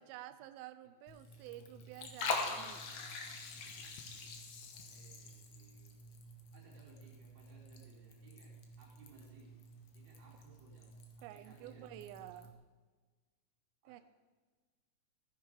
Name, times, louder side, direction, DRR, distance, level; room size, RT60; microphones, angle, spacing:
voice 1, 0.0-2.8 11.2-12.6 13.9-14.0, right 13 dB, 85° right, 11 dB, 2.5 m, -50 dB
Liquid, 1.1-12.5, left 4 dB, 60° left, 1.9 m, -45 dB
voice 2, 4.7-6.0 6.5-8.5 8.8-9.5 9.9-12.4 13.8-14.0, right 4 dB, 65° right, -5 dB, 6.0 m, -63 dB
15.5 x 10.0 x 4.7 m, 1.4 s
omnidirectional pair, 4.4 m